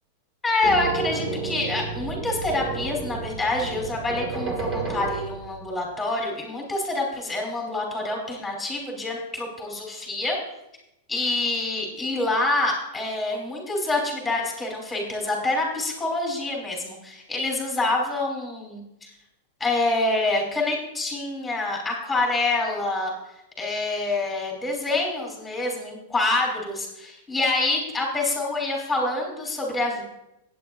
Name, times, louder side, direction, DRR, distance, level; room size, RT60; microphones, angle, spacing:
voice 1, 0.4-10.4 11.1-19.1 19.6-23.1 23.6-30.0, left 2 dB, 5° left, 0 dB, 3.1 m, -26 dB
sound 1, 0.6-5.7, right 4 dB, 25° right, 1.8 m, -31 dB
17.0 x 8.8 x 2.4 m, 0.88 s
supercardioid pair, 150°, 0 cm